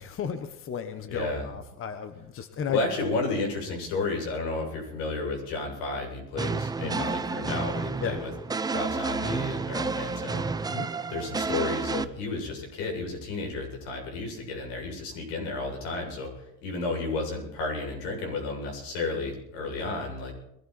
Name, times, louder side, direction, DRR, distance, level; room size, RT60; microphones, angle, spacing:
voice 1, 0.0-2.8 6.8-7.1 8.0-8.2 10.7-10.9, left 7 dB, 35° left, 9 dB, 1.5 m, -34 dB
voice 2, 1.1-1.5 2.7-8.3 8.7-20.3, left 3 dB, 85° left, 1 dB, 7.7 m, -32 dB
sound 1, 6.4-12.0, right 4 dB, 10° right, 0.5 m, -30 dB
22.0 x 13.5 x 4.5 m, 0.83 s
cardioid pair, 130°, 35 cm